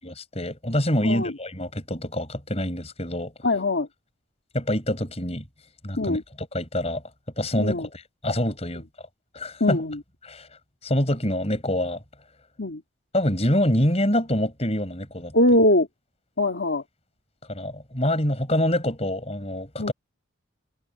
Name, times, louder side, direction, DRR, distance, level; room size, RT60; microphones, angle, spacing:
voice 1, 0.0-3.3 4.5-5.4 5.8-7.0 7.4-8.8 9.3-9.8 10.2-10.5 10.8-12.0 13.1-15.3 17.5-19.9, left 1 dB, 30° left, 6.6 m, -26 dB
voice 2, 3.4-3.9 6.0-6.2 7.6-7.9 9.6-10.0 12.6-12.8 15.3-15.9 16.4-16.8 19.8-19.9, left 1 dB, 65° left, 2.4 m, -22 dB
head